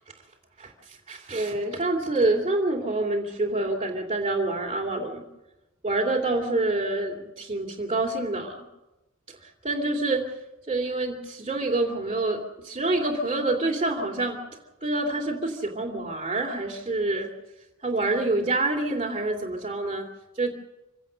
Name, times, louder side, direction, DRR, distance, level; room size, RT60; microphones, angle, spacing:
voice 1, 0.6-5.2 5.8-8.6 9.3-10.2 10.7-14.4 14.8-17.3 17.8-20.1 20.3-20.5, right 2 dB, 30° right, -2 dB, 2.9 m, -27 dB
27.0 x 16.5 x 6.4 m, 0.96 s
head